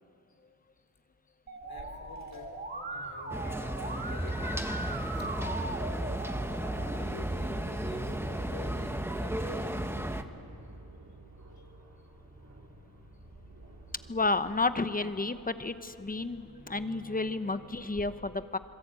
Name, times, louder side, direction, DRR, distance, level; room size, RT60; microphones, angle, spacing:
Musical instrument, 1.5-7.0, right 2 dB, 25° right, 2.0 m, -40 dB
Aircraft, 1.6-18.0, right 1 dB, 45° right, 3.8 m, -53 dB
voice 1, 1.7-2.5 2.9-4.9 5.2-5.7 6.9-9.8, left 4 dB, 75° left, 3 dB, 3.2 m, -49 dB
sound 1, 3.3-10.2, right 1 dB, 5° right, 1.3 m, -34 dB
voice 2, 14.1-18.6, left 3 dB, 25° left, 11 dB, 0.9 m, -31 dB
26.0 x 23.5 x 8.8 m, 2.7 s
wide cardioid pair, 100°, 37 cm